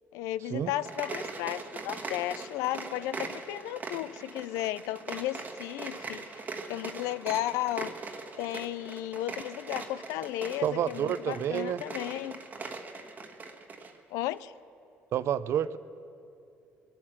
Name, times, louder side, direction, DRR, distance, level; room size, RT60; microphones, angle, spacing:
voice 1, 0.1-6.4 6.7-7.9 8.4-12.4 14.1-14.5, left 14 dB, 85° left, 17 dB, 0.4 m, -34 dB
sound 1, 0.7-14.0, right 3 dB, 35° right, 1.3 m, -41 dB
voice 2, 10.6-11.8 15.1-15.8, right 10 dB, 60° right, 15 dB, 0.5 m, -29 dB
22.5 x 8.8 x 6.1 m, 2.7 s
supercardioid pair, 85°, 5 cm